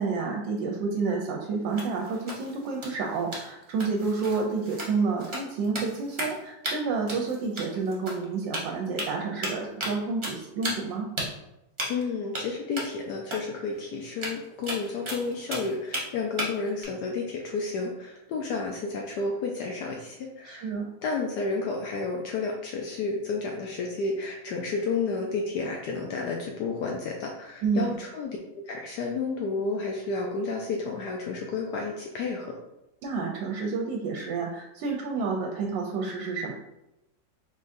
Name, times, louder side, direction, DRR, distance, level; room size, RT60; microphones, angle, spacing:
voice 1, 0.0-11.1 20.4-20.9 27.6-27.9 33.0-36.5, right 4 dB, 85° right, 0 dB, 1.3 m, -29 dB
sound 1, 1.7-6.4 6.6-6.7 7.1-8.3 8.5-9.1 9.4-10.0 10.2-10.9 11.2-11.3 11.8-12.0 12.3-12.4 12.8-12.9 13.3-13.4 13.7-13.8 14.1-16.0 16.4-16.8, right 1 dB, 40° right, 0.4 m, -34 dB
voice 2, 11.9-20.7 21.0-28.4 28.7-32.5, left 4 dB, 75° left, 0 dB, 1.1 m, -31 dB
3.8 x 3.7 x 2.5 m, 0.90 s
omnidirectional pair, 2.0 m